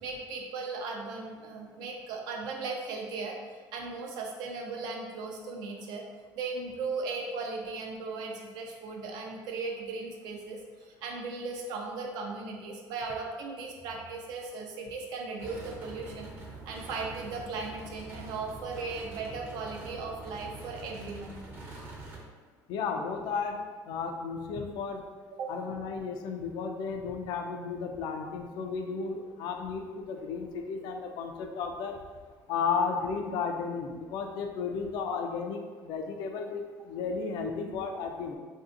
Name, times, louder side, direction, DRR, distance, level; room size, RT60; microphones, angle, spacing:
voice 1, 0.0-3.4 3.7-6.0 6.3-16.3 16.7-21.4 25.3-25.5, right 4 dB, 75° right, 1 dB, 0.5 m, -37 dB
sound 1, 15.4-22.2, right 2 dB, 30° right, 0.6 m, -45 dB
voice 2, 22.7-23.6 23.9-25.0 25.5-32.0 32.5-38.4, left 5 dB, 75° left, 4 dB, 0.3 m, -33 dB
3.2 x 2.6 x 2.5 m, 1.5 s
cardioid pair, 160°, 7 cm